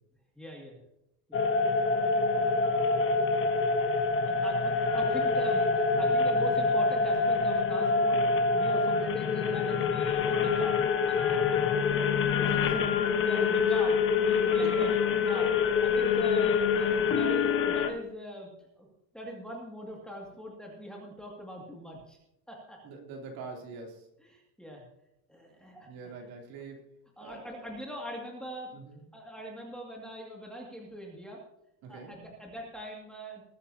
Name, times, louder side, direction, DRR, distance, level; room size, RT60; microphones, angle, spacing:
voice 1, 0.3-0.8 1.3-1.4 2.3-2.5 4.2-8.2 8.5-10.8 11.1-11.6 12.6-12.7 13.3-14.9 15.3-15.5 15.8-18.5 18.8-18.9 19.1-22.2 22.5-22.8 24.2-24.8 25.3-25.9 27.2-28.7 29.1-31.4 31.9-33.4, right 1 dB, ahead, -2 dB, 2.3 m, -42 dB
sound 1, 1.3-17.9, left 4 dB, 30° left, 1.2 m, -26 dB
voice 2, 5.9-6.2 12.4-13.0 14.6-15.0 17.0-17.3 22.8-24.1 25.9-26.8 27.2-27.7 28.7-29.0 31.8-32.1, right 4 dB, 50° right, 2 dB, 3.3 m, -44 dB
20.5 x 10.5 x 2.8 m, 0.79 s
cardioid pair, 180°, 44 cm